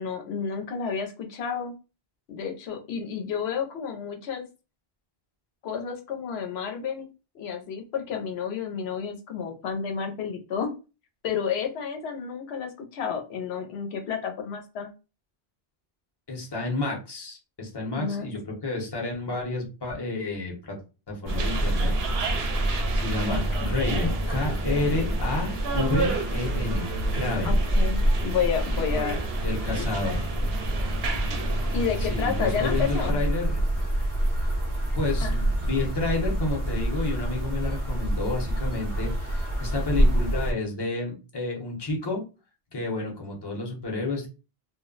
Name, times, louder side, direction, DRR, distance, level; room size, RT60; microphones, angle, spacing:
voice 1, 0.0-1.7 2.3-4.5 5.6-7.1 7.3-10.7 11.2-14.9 17.9-18.3 23.3-23.7 24.8-24.9 27.4-29.2 29.7-30.2 31.7-33.2 35.2-35.3, left 7 dB, 90° left, 4 dB, 0.9 m, -31 dB
voice 2, 16.3-20.8 21.1-21.9 22.9-26.8 27.1-27.6 28.9-29.1 29.4-30.2 32.0-33.6 34.9-42.2 42.7-44.3, left 2 dB, 25° left, -1 dB, 0.8 m, -30 dB
sound 1, 21.3-40.5, right 1 dB, 35° right, 0.8 m, -27 dB
sound 2, 21.3-33.1, right 3 dB, 80° right, 0.8 m, -33 dB
2.3 x 2.0 x 3.7 m, 0.31 s
omnidirectional pair, 1.0 m